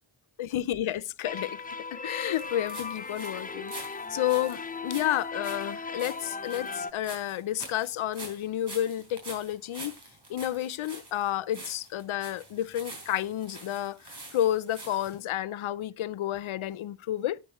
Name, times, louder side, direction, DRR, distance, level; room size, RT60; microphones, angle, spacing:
voice 1, 0.4-1.6 1.9-9.9 10.3-17.4, left 12 dB, 85° left, 0.6 m, -31 dB
sound 1, 1.2-6.9, left 4 dB, 20° left, 0.6 m, -37 dB
sound 2, 2.3-15.2, right 2 dB, 55° right, 3.8 m, -46 dB
9.7 x 8.2 x 3.0 m
cardioid pair, 45°, 47 cm